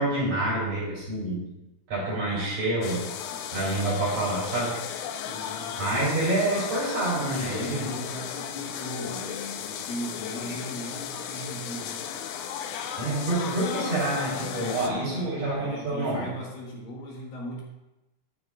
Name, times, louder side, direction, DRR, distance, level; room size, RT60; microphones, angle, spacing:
voice 1, 0.0-1.4 1.9-3.0 3.5-4.8 5.8-7.9 13.0-16.3, right 2 dB, 45° right, -7 dB, 4.8 m, -27 dB
sound 1, 2.8-14.9, left 8 dB, 85° left, 3.1 m, -35 dB
voice 2, 5.2-5.7 7.5-12.1 15.0-17.6, equal, 65° left, -3 dB, 2.3 m, -38 dB
12.0 x 9.4 x 2.5 m, 1.0 s
omnidirectional pair, 5.8 m